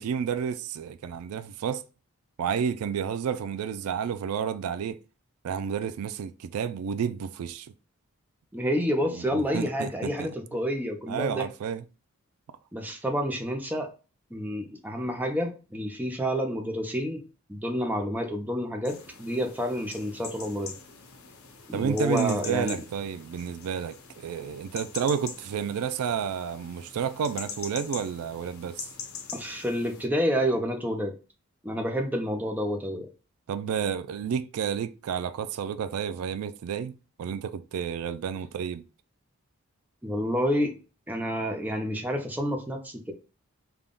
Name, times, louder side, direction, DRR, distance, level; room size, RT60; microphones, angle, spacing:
voice 1, 0.0-1.8 2.4-5.0 5.4-7.7 9.1-10.3 11.1-11.8 21.7-28.9 33.5-38.8, right 7 dB, 85° right, 0.3 m, -31 dB
voice 2, 8.5-11.5 12.7-13.9 14.3-17.2 17.5-20.8 21.7-22.8 29.3-31.1 31.6-33.1 40.0-40.7 41.1-43.1, equal, 10° right, 0.5 m, -29 dB
sound 1, 18.9-30.1, left 6 dB, 75° left, 0.7 m, -43 dB
3.5 x 2.3 x 3.7 m
head